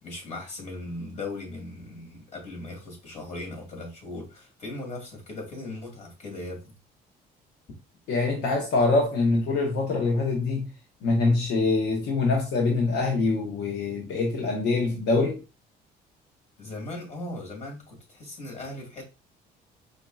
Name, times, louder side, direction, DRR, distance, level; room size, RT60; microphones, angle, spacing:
voice 1, 0.0-6.7 16.6-19.0, left 2 dB, 45° left, 2.2 m, -38 dB
voice 2, 8.1-10.6 11.0-15.4, left 3 dB, 80° left, 1.0 m, -24 dB
5.0 x 2.7 x 2.3 m
cardioid pair, 110°, 17 cm